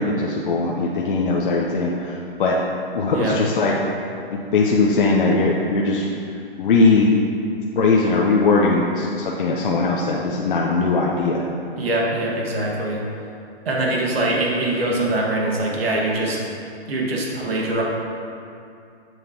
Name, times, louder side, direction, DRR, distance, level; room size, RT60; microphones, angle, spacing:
voice 1, 0.0-2.6 2.9-3.7 4.3-6.1 6.6-7.1 7.8-11.5, left 3 dB, 55° left, -2 dB, 0.8 m, -20 dB
voice 2, 11.8-13.0 13.7-16.4 16.9-17.8, right 1 dB, 70° right, -2 dB, 1.8 m, -23 dB
8.1 x 7.5 x 2.9 m, 2.5 s
hypercardioid pair, 160°, 31 cm